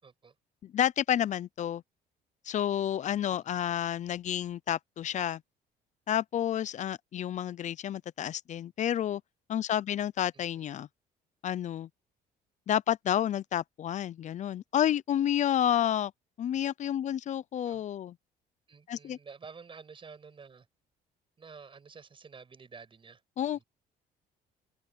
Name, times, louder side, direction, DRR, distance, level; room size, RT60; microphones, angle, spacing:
voice 1, 0.0-0.4 3.3-3.6 10.3-10.7 17.6-17.8 18.7-20.7 21.4-23.2 23.5-23.6, right 5 dB, 30° right, 7.2 m, -50 dB
voice 2, 0.6-1.8 2.4-5.4 6.1-9.2 9.5-10.9 11.4-11.9 12.7-16.1 16.4-18.1 18.9-19.2 23.4-23.6, left 10 dB, 45° left, 0.6 m, -30 dB
open air
cardioid pair, 110°, 17 cm